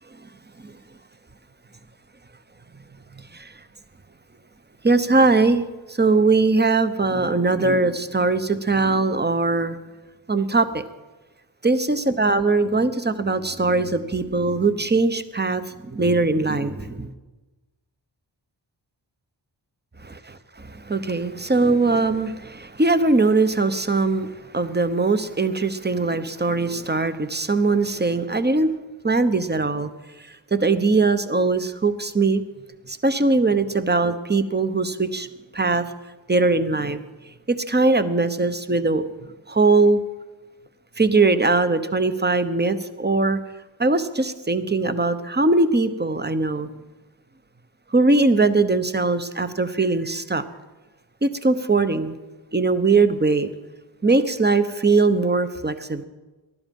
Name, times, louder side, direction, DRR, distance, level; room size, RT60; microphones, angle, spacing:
voice 1, 4.8-5.7 6.0-9.8 10.3-10.8 11.6-17.1 20.0-28.7 29.0-29.9 30.6-32.4 32.9-35.3 35.5-35.9 36.3-37.0 37.5-39.0 39.5-40.0 41.0-43.4 43.8-46.7 47.9-50.4 51.2-52.2 52.5-53.5 54.0-56.0, right 3 dB, 20° right, 11 dB, 1.0 m, -21 dB
19.5 x 12.5 x 5.4 m, 1.2 s
wide cardioid pair, 75°, 45 cm